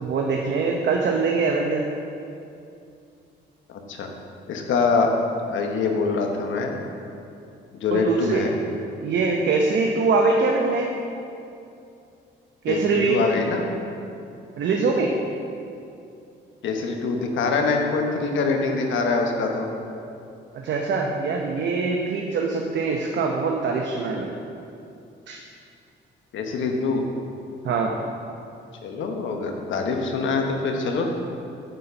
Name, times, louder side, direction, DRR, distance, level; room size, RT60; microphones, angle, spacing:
voice 1, 0.0-1.8 7.9-8.4 9.0-10.9 12.6-13.2 14.6-15.1 20.5-24.3 25.3-25.4 27.6-27.9, right 4 dB, 65° right, 0 dB, 0.8 m, -23 dB
voice 2, 3.7-4.1 4.5-5.1 5.5-6.8 7.7-8.5 12.7-13.6 16.6-19.7 26.3-27.0 28.8-31.1, left 4 dB, 75° left, 3 dB, 1.1 m, -24 dB
9.2 x 4.3 x 6.8 m, 2.6 s
cardioid pair, 90°, 20 cm